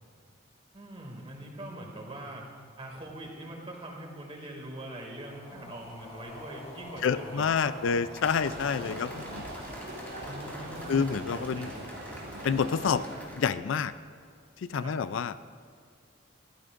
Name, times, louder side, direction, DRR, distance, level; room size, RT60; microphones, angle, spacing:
voice 1, 0.7-2.5 2.8-8.0 10.2-11.1 11.3-11.9 14.7-15.0, right 1 dB, 30° right, 0 dB, 2.2 m, -43 dB
sound 1, 4.9-14.3, left 1 dB, 30° left, 2.3 m, -49 dB
voice 2, 7.0-9.5 10.9-11.7 12.4-13.0 13.4-13.9 14.6-15.3, left 6 dB, 70° left, 14 dB, 0.4 m, -28 dB
sound 2, 8.1-13.5, left 1 dB, 10° left, 2.1 m, -48 dB
sound 3, 8.3-13.3, right 1 dB, 50° right, 2.6 m, -41 dB
22.0 x 14.5 x 2.5 m, 2.1 s
head